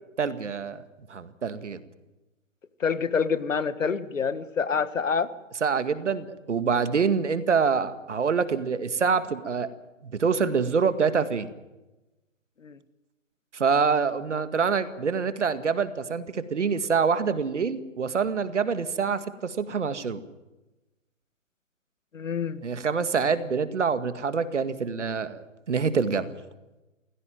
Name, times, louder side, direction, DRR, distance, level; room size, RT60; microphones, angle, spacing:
voice 1, 0.2-0.8 1.1-1.8 5.6-9.7 10.0-11.5 13.5-20.2 22.6-26.3, right 5 dB, 65° right, 11 dB, 2.1 m, -26 dB
voice 2, 2.8-5.3 12.6-12.8 22.1-22.6, left 6 dB, 80° left, 14 dB, 1.7 m, -27 dB
22.5 x 17.0 x 9.2 m, 1.0 s
hypercardioid pair, 170°, 39 cm